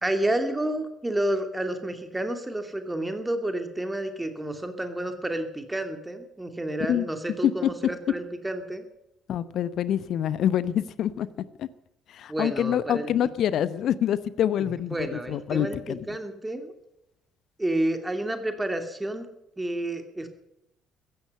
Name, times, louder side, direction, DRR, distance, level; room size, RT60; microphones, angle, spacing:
voice 1, 0.0-8.9 12.3-13.1 14.9-16.7 17.6-19.3 19.6-20.3, right 1 dB, 10° right, 7 dB, 2.7 m, -30 dB
voice 2, 9.3-11.3 11.6-11.7 12.1-16.1, left 10 dB, 55° left, 17 dB, 0.9 m, -26 dB
15.5 x 13.5 x 6.7 m, 0.81 s
figure-of-eight pair, 50°, 0 cm